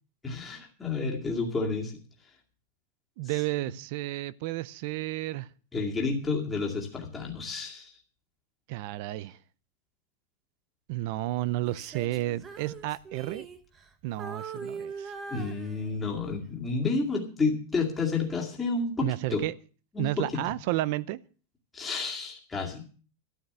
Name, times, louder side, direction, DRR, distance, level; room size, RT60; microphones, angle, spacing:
voice 1, 0.2-1.9 5.7-7.9 15.3-19.4 19.9-20.4 21.7-22.8, left 4 dB, 10° left, 2.3 m, -30 dB
voice 2, 3.2-5.5 8.7-9.4 10.9-13.5 14.0-15.1 19.0-19.5 20.0-21.2, right 17 dB, 45° right, 0.5 m, -31 dB
Female singing, 11.6-13.9 14.2-16.2 16.8-17.0, right 5 dB, 15° right, 1.0 m, -41 dB
13.0 x 9.3 x 6.8 m
supercardioid pair, 170°, 0 cm